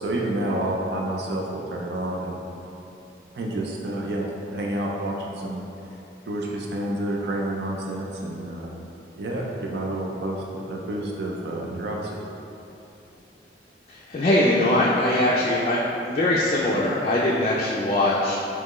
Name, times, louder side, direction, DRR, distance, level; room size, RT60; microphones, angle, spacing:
voice 1, 0.0-2.4 3.3-4.3 4.5-5.6 6.3-8.7 9.2-12.2, right 1 dB, 70° right, -1 dB, 0.4 m, -29 dB
voice 2, 13.9-18.4, left 1 dB, 35° left, -5 dB, 0.3 m, -21 dB
4.3 x 3.0 x 3.0 m, 2.9 s
head